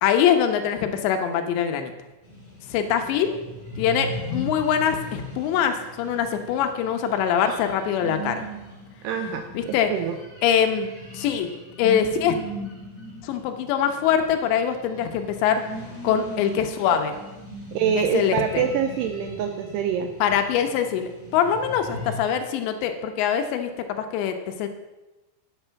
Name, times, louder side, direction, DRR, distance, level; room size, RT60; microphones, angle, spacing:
voice 1, 0.0-1.9 2.7-3.4 3.8-8.4 9.5-9.9 10.4-11.5 11.8-12.3 13.2-15.6 16.0-17.2 18.0-18.6 20.2-23.7 24.0-24.7, left 8 dB, 80° left, 6 dB, 3.0 m, -23 dB
sound 1, 2.2-22.1, equal, 5° left, 1.8 m, -39 dB
voice 2, 9.0-10.2 17.7-20.1, right 8 dB, 85° right, 6 dB, 2.4 m, -25 dB
9.1 x 7.9 x 5.6 m, 1.1 s
omnidirectional pair, 5.3 m